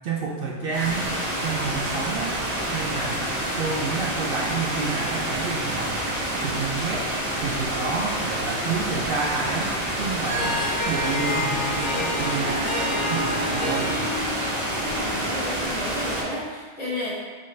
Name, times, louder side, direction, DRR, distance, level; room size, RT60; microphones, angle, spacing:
voice 1, 0.0-1.1 1.4-2.4 2.7-6.0 6.4-7.1 7.4-14.0, right 4 dB, 60° right, -2 dB, 0.6 m, -30 dB
sound 1, 0.7-16.2, right 1 dB, 80° right, 1.5 m, -28 dB
Harp, 10.0-15.8, left 1 dB, 40° left, 0.9 m, -29 dB
voice 2, 14.8-17.1, left 1 dB, 85° left, -9 dB, 1.9 m, -32 dB
5.4 x 2.5 x 3.1 m, 1.5 s
omnidirectional pair, 1.3 m